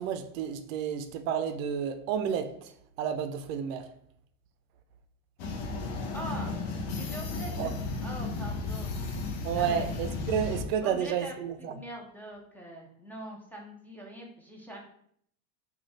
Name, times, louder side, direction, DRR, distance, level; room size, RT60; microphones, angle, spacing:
voice 1, 0.0-3.9 7.6-7.7 9.4-11.7, right 8 dB, 80° right, 0.5 m, -31 dB
sound 1, 5.4-10.6, left 3 dB, 60° left, 0.8 m, -34 dB
voice 2, 6.1-6.5 7.0-7.7 8.0-8.9 9.5-9.8 10.8-14.8, right 1 dB, 5° left, 0.5 m, -42 dB
3.1 x 2.4 x 3.9 m
supercardioid pair, 120°, 40 cm